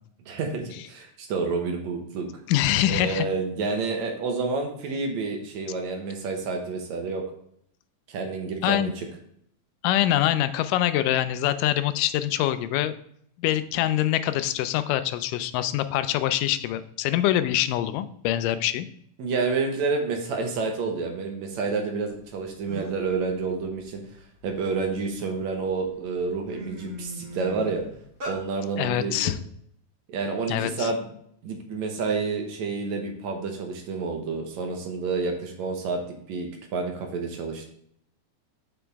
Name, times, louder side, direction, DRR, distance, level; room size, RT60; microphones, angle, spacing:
voice 1, 0.3-2.3 2.9-7.2 8.1-9.1 19.2-24.0 24.4-27.8 28.3-29.3 30.1-31.1 31.4-37.7, right 4 dB, 65° right, 2 dB, 2.1 m, -29 dB
voice 2, 2.5-3.3 8.6-8.9 9.8-13.0 13.4-18.9 28.8-29.4 30.5-30.9, left 13 dB, 85° left, 12 dB, 2.1 m, -24 dB
sound 1, 22.3-22.4 22.7-23.1 23.6-25.1 25.7-25.9 26.2-28.4, right 1 dB, 35° right, 2.1 m, -38 dB
7.0 x 6.2 x 3.4 m, 0.67 s
omnidirectional pair, 3.7 m